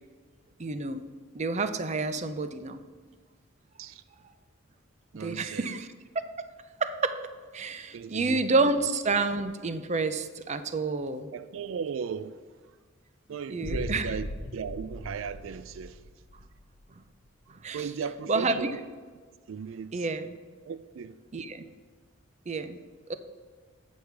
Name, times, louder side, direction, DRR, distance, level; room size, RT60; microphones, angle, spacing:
voice 1, 0.6-1.0 1.3-2.8 5.2-5.9 6.1-6.2 6.8-7.2 7.5-11.3 13.5-14.1 17.5-17.9 18.3-18.7 19.9-20.3 21.3-21.6 22.5-22.8 23.1-23.2, right 3 dB, 35° right, 0.5 m, -29 dB
voice 2, 5.1-5.8 7.9-8.4 11.3-12.4 13.3-16.0 17.7-18.8 19.5-20.0 20.7-21.2, right 6 dB, 85° right, 0.4 m, -36 dB
sound 1, 13.6-16.6, left 1 dB, 75° left, 0.7 m, -38 dB
8.4 x 6.3 x 5.7 m
head